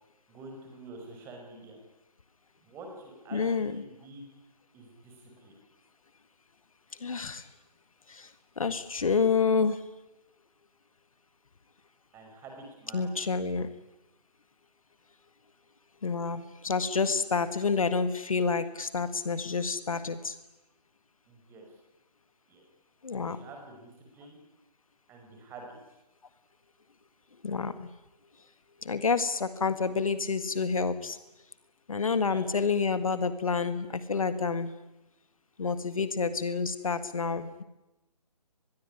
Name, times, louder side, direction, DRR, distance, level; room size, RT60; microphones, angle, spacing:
voice 1, 0.3-1.8 2.6-4.2 4.7-5.5 12.1-13.2 17.4-17.5 21.3-21.8 22.5-22.6 23.2-24.4 25.1-25.7 29.0-29.1 32.2-32.5, right 2 dB, 10° right, 3 dB, 5.4 m, -48 dB
voice 2, 3.3-3.7 7.0-7.5 8.1-8.3 8.6-9.8 12.9-13.7 16.0-20.3 23.0-23.4 27.4-27.9 28.8-31.2 31.9-34.7 35.6-37.6, left 5 dB, 55° left, 12 dB, 1.8 m, -28 dB
25.5 x 21.5 x 9.8 m, 0.96 s
figure-of-eight pair, 145°, 21 cm